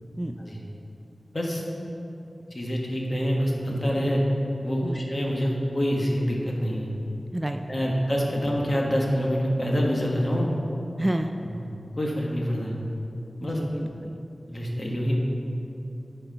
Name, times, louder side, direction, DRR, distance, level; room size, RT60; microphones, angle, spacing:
voice 1, 2.5-4.2 4.6-6.9 7.7-10.5 11.5-11.6 12.0-12.8 13.4-13.6 14.5-15.2, equal, 40° left, -2 dB, 1.4 m, -26 dB
voice 2, 7.3-7.9 11.0-11.3 13.4-14.2, right 1 dB, 20° right, 5 dB, 0.3 m, -30 dB
9.6 x 4.6 x 5.6 m, 2.8 s
wide cardioid pair, 80°, 0 cm